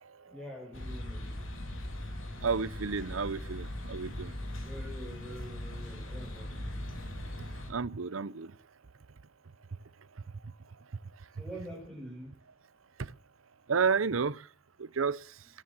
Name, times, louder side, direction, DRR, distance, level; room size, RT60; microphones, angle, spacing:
voice 1, 0.3-1.4 4.6-6.7 11.4-12.3, equal, 5° left, 6.8 m, -45 dB
sound 1, 0.7-7.7, left 1 dB, 80° left, 4.0 m, -40 dB
voice 2, 2.4-4.3 7.7-8.5 13.7-14.4 14.8-15.2, right 5 dB, 80° right, 0.7 m, -31 dB
21.5 x 10.0 x 6.1 m
head